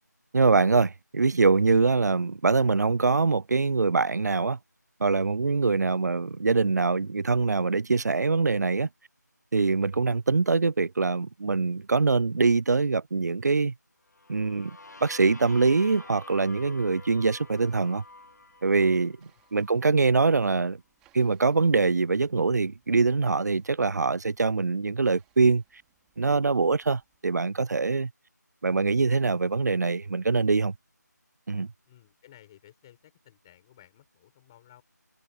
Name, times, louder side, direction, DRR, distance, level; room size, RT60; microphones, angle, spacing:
voice 1, 0.3-4.6 5.0-8.9 9.5-13.7 14.3-18.0 18.6-20.8 21.1-25.6 26.2-28.1 28.6-30.7 31.5-31.7, right 4 dB, 65° right, 0.4 m, -24 dB
sound 1, 14.1-19.9, left 3 dB, 65° left, 1.5 m, -49 dB
sound 2, 16.1-27.4, right 17 dB, 5° right, 4.5 m, -72 dB
voice 2, 31.9-34.8, left 13 dB, 15° left, 7.6 m, -56 dB
figure-of-eight pair, 170°, 10 cm